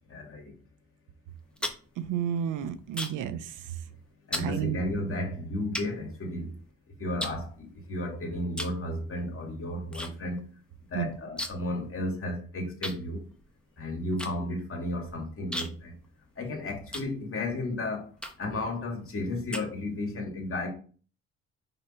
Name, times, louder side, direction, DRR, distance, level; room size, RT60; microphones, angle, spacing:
voice 1, 0.1-0.6 4.3-6.6 7.0-10.4 10.9-13.2 13.8-15.9 16.4-18.1 18.4-20.7, left 1 dB, 45° left, 2.2 m, -33 dB
sound 1, 1.3-3.4 3.6-3.9 4.3-4.5 5.2-5.3 5.7-6.7 7.2-8.1 8.5-8.8 9.1-10.1 10.4-10.5 10.7-11.8 12.0-12.1 12.8-17.6 18.2-18.6 19.1-20.1, equal, 5° left, 1.1 m, -38 dB
voice 2, 2.0-3.6 4.4-4.8 10.9-11.1, right 9 dB, 90° right, 0.6 m, -31 dB
5.6 x 3.9 x 4.3 m
cardioid pair, 90°, 30 cm